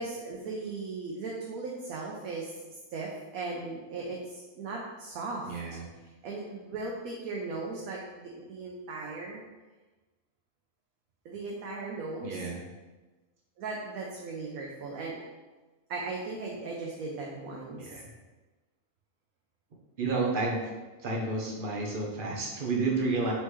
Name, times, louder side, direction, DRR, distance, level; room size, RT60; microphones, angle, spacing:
voice 1, 0.0-2.5 2.9-5.6 6.2-9.4 11.2-12.5 13.6-15.2 15.9-18.0, right 3 dB, 90° right, -2 dB, 1.1 m, -37 dB
voice 2, 5.5-5.9 12.2-12.6 17.8-18.1 20.0-20.6 21.0-23.3, right 3 dB, 45° right, -1 dB, 0.8 m, -30 dB
4.2 x 3.4 x 3.1 m, 1.2 s
omnidirectional pair, 1.4 m